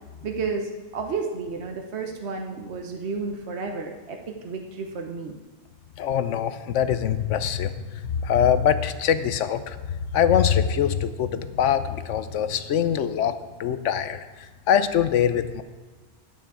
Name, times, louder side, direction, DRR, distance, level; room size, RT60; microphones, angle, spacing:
voice 1, 0.2-5.4, right 4 dB, 65° right, 3 dB, 1.2 m, -32 dB
voice 2, 6.0-13.3 13.6-15.6, left 8 dB, 85° left, 11 dB, 1.0 m, -23 dB
11.0 x 9.4 x 4.7 m, 1.3 s
omnidirectional pair, 1.2 m